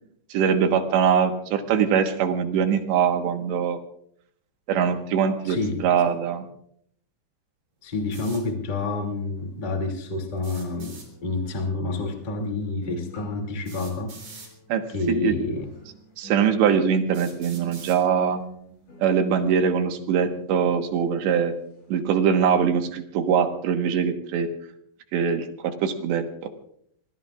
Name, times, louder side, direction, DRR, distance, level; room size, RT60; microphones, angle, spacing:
voice 1, 0.3-3.8 4.7-6.5 14.7-14.8 15.1-15.3 16.2-18.4 19.0-21.5 21.9-24.5 25.1-26.5, right 7 dB, 75° right, 6 dB, 3.4 m, -22 dB
voice 2, 5.4-5.8 7.8-14.2 14.9-15.6, left 3 dB, 20° left, 2 dB, 1.3 m, -28 dB
sound 1, 8.1-8.4 10.4-11.1 12.5-12.6 13.7-14.5 15.5-15.6 16.3-16.4 17.1-18.0, right 4 dB, 40° right, 5.4 m, -44 dB
sound 2, 9.4-9.5 10.8-21.9 22.1-22.4, right 1 dB, 75° left, 8.7 m, -48 dB
26.0 x 20.5 x 2.5 m, 0.67 s
omnidirectional pair, 5.3 m